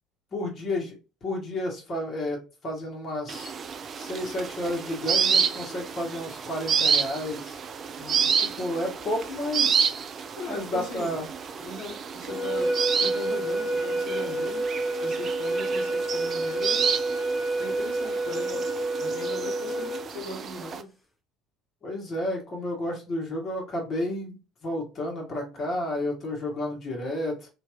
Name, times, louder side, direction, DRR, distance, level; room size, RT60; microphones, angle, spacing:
voice 1, 0.3-0.9 1.2-3.5 3.9-7.6 8.3-9.9 10.4-11.3 21.8-27.5, left 1 dB, 35° left, -1 dB, 1.3 m, -31 dB
sound 1, 3.3-20.8, right 6 dB, 40° right, 0.3 m, -30 dB
voice 2, 8.0-8.3 10.4-11.2 11.6-14.6 15.0-16.9 17.6-20.9 25.3-25.7, left 2 dB, 70° left, -2 dB, 1.1 m, -39 dB
sound 2, 12.3-20.1, right 2 dB, 15° left, 0.8 m, -29 dB
2.9 x 2.5 x 2.3 m, 0.31 s
figure-of-eight pair, 60°, 0 cm